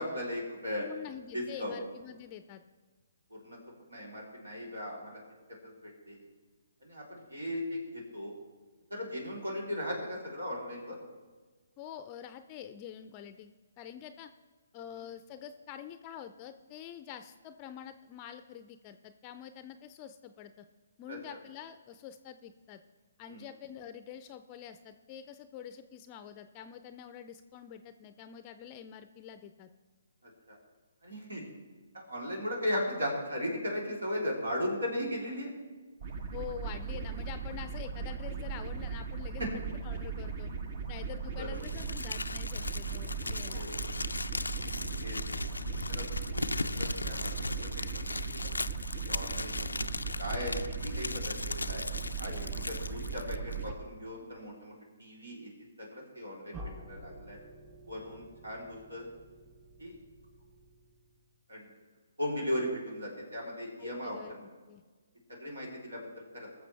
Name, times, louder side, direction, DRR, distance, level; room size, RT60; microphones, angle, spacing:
voice 1, 0.0-0.8 1.3-1.8 3.3-3.6 3.9-5.2 5.6-6.3 6.8-8.3 8.9-11.0 21.1-21.2 23.3-23.5 30.5-30.6 31.0-31.4 31.9-35.5 39.4-39.5 41.3-41.7 43.5-43.8 44.8-45.2 45.6-46.0 46.3-48.5 49.0-49.9 50.2-50.6 50.8-51.8 52.2-55.5 55.8-57.4 57.9-59.1 59.8-60.0 61.5-61.7 62.2-64.4 65.3-66.5, left 1 dB, 85° right, -2 dB, 3.4 m, -37 dB
voice 2, 0.8-2.6 11.8-14.3 14.7-20.6 21.0-22.8 23.2-29.7 36.3-40.5 40.9-43.7 52.3-52.7 63.8-64.8, left 9 dB, 30° left, 10 dB, 0.5 m, -46 dB
sound 1, 36.0-53.7, right 5 dB, 50° right, 1.1 m, -38 dB
Crumpling crinkling, 41.6-53.7, left 2 dB, 90° left, 0.4 m, -37 dB
sound 2, 56.5-61.3, right 1 dB, 25° right, 3.1 m, -50 dB
19.5 x 7.0 x 3.4 m, 1.4 s
figure-of-eight pair, 140°, 0 cm